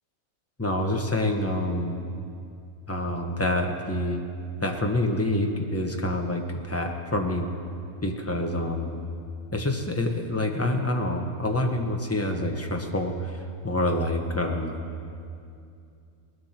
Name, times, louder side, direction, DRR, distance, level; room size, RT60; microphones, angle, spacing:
voice 1, 0.6-2.0 2.9-4.2 4.6-7.5 8.0-8.9 9.5-13.4 13.6-14.8, left 1 dB, 10° left, 2 dB, 0.8 m, -27 dB
19.5 x 11.0 x 4.4 m, 2.5 s
omnidirectional pair, 1.6 m